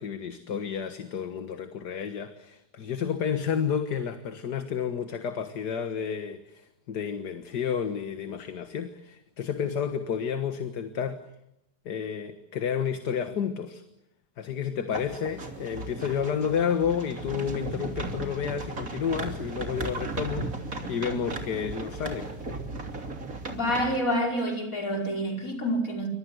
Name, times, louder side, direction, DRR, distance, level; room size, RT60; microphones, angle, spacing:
voice 1, 0.0-11.2 11.9-13.8 14.4-22.3, left 7 dB, 70° left, 2.0 m, -31 dB
sound 1, 14.9-24.0, right 2 dB, 50° right, 3.6 m, -36 dB
voice 2, 23.5-26.1, equal, 50° left, 5.7 m, -28 dB
28.5 x 24.5 x 8.0 m
omnidirectional pair, 1.9 m